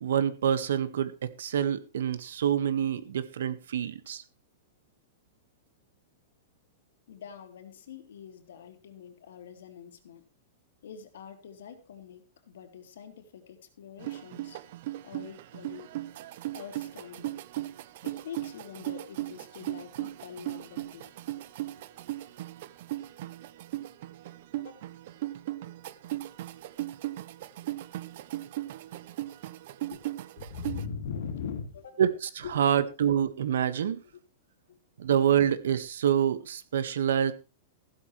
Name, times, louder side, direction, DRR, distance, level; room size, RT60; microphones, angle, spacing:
voice 1, 0.0-4.2 32.0-34.0 35.0-37.3, right 9 dB, 75° right, 1.7 m, -27 dB
voice 2, 7.1-10.2 10.8-14.6 15.0-15.9 16.5-17.4 18.0-21.1 21.8-21.9 24.5-24.9 28.9-29.0 29.9-30.0 30.4-32.0 32.4-32.6 34.7-34.8, left 7 dB, 75° left, 3.3 m, -43 dB
sound 1, 14.0-30.8, right 15 dB, 45° right, 0.8 m, -37 dB
15.5 x 12.5 x 3.3 m
supercardioid pair, 180°, 0 cm